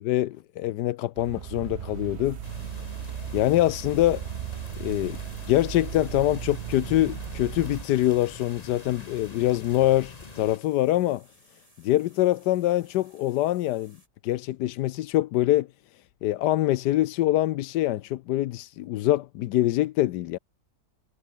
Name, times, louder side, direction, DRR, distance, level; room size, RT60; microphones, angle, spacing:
voice 1, 0.0-2.4 3.3-4.2 4.8-5.2 5.5-11.2 11.8-14.0 14.2-15.7 16.2-20.4, left 15 dB, 75° left, 1.2 m, -24 dB
sound 1, 1.1-7.8, right 9 dB, 55° right, 0.8 m, -36 dB
sound 2, 2.2-14.1, right 1 dB, 20° right, 6.5 m, -60 dB
sound 3, 2.4-10.6, left 3 dB, 25° left, 1.7 m, -44 dB
omnidirectional pair, 1.9 m